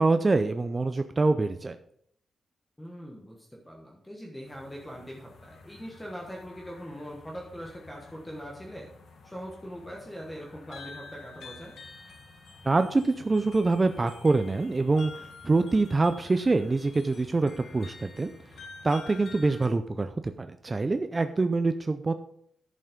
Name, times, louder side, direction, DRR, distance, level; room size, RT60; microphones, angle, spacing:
voice 1, 0.0-1.8 12.6-18.3 18.8-22.1, right 3 dB, 25° right, 9 dB, 0.4 m, -25 dB
voice 2, 2.8-8.9 9.2-11.8 19.0-19.2, equal, 10° left, -2 dB, 1.3 m, -42 dB
sound 1, 4.4-19.7, left 4 dB, 85° left, 1.8 m, -49 dB
11.0 x 5.6 x 5.1 m, 0.68 s
wide cardioid pair, 130°, 0 cm